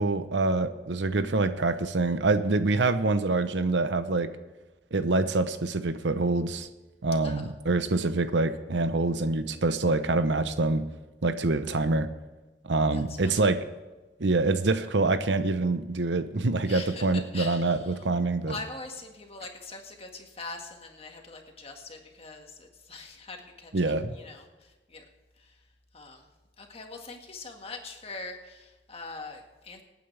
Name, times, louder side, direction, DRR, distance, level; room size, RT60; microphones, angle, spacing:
voice 1, 0.0-4.3 4.9-6.7 7.0-10.9 11.2-12.1 12.6-13.6 14.2-18.5 23.7-24.1, right 3 dB, 85° right, 11 dB, 0.8 m, -25 dB
voice 2, 12.9-13.5 16.6-18.1 18.5-25.1 25.4-25.7 25.9-26.3 26.6-29.8, left 3 dB, 35° left, 2 dB, 1.8 m, -43 dB
25.0 x 9.2 x 3.4 m, 1.2 s
head